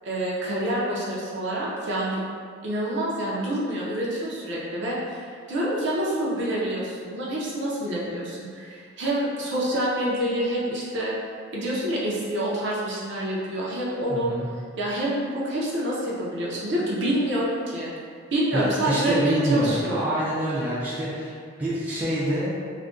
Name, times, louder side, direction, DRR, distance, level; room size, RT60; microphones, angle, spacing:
voice 1, 0.0-2.2 2.6-11.1 11.5-14.3 14.8-17.9 18.3-20.2, right 1 dB, 55° right, -6 dB, 0.6 m, -27 dB
voice 2, 14.1-14.5 18.5-22.5, right 1 dB, 5° right, -10 dB, 0.4 m, -27 dB
2.5 x 2.1 x 3.6 m, 2.1 s
head